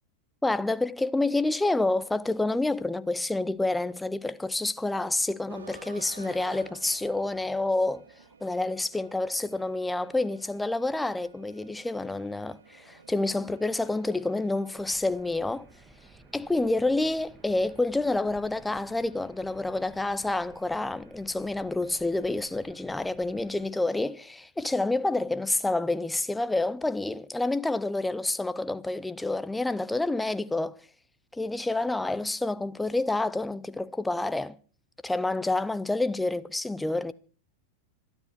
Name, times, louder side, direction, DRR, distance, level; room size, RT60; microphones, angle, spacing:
voice 1, 0.4-8.0 8.4-15.7 16.3-30.8 31.3-34.6 35.0-37.1, left 2 dB, 5° left, 0.7 m, -28 dB
sound 1, 5.5-24.1, right 4 dB, 65° right, 2.2 m, -55 dB
sound 2, 14.7-23.7, right 3 dB, 15° right, 1.6 m, -55 dB
26.0 x 9.9 x 4.7 m
figure-of-eight pair, 90°, 0 cm